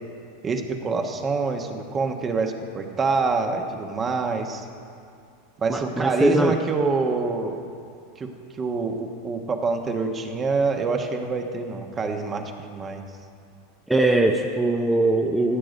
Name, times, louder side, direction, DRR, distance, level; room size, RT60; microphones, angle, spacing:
voice 1, 0.4-4.7 5.6-7.6 8.2-8.3 8.6-13.0, right 4 dB, 25° right, 4 dB, 1.2 m, -26 dB
voice 2, 5.7-6.6 13.9-15.6, right 2 dB, 5° right, 2 dB, 0.7 m, -21 dB
16.5 x 7.8 x 5.2 m, 2.4 s
hypercardioid pair, 105°, 0 cm